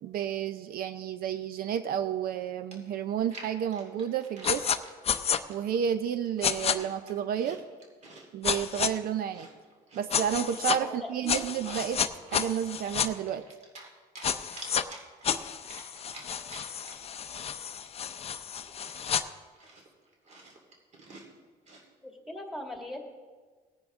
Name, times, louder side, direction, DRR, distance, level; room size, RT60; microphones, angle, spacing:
voice 1, 0.0-4.7 5.5-7.6 8.3-9.5 9.9-12.0 12.3-13.4, right 9 dB, 60° right, 11 dB, 0.5 m, -31 dB
Chewing mastication, 2.7-5.0 5.5-5.9 6.2-8.3 8.6-10.8 11.2-12.1 12.5-13.9 14.2-17.2 17.4-17.5 17.8-21.9, right 2 dB, 40° right, 2.4 m, -49 dB
sound 1, 4.4-4.8 5.1-5.4 6.4-6.8 8.4-8.9 10.1-10.8 11.3-13.1 14.2-14.8 15.2-19.2, left 8 dB, 35° left, 0.6 m, -30 dB
voice 2, 10.8-11.6 22.0-23.0, left 1 dB, ahead, 2 dB, 2.0 m, -40 dB
18.5 x 9.7 x 3.6 m, 1.4 s
cardioid pair, 110°, 17 cm